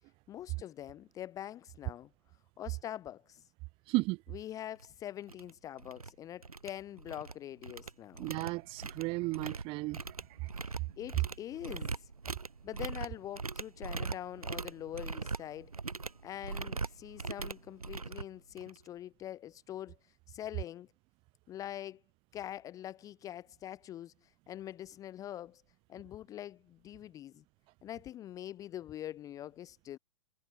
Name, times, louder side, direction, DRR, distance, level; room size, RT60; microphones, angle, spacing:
voice 1, 0.3-2.1 2.6-3.4 4.3-8.3 10.6-12.1 12.6-15.7 16.2-20.9 21.5-22.0 22.3-25.6 25.9-27.4 27.8-30.0, left 12 dB, 20° left, 0.6 m, -44 dB
voice 2, 3.9-4.2 8.2-10.0 10.4-10.5, right 23 dB, 30° right, 1.2 m, -34 dB
sound 1, 4.8-4.9 5.3-5.5 5.8-6.1 6.4-7.3 7.6-18.9, right 4 dB, 80° right, 1.1 m, -41 dB
figure-of-eight pair, 110°, 18 cm